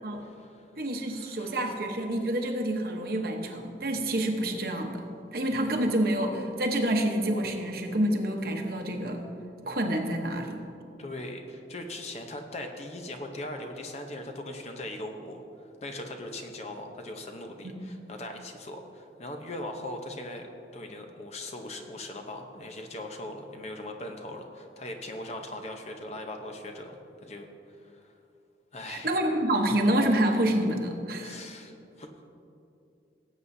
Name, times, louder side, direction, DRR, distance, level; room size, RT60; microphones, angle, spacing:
voice 1, 0.2-0.7 1.1-1.6 11.0-20.5 20.7-28.1 28.7-29.1 31.2-32.3, left 1 dB, 40° left, 4 dB, 0.8 m, -40 dB
voice 2, 0.8-5.0 5.3-9.2 9.6-10.6 17.6-17.7 28.9-31.4, right 1 dB, 55° right, 3 dB, 1.0 m, -28 dB
18.0 x 8.2 x 2.7 m, 2.6 s
head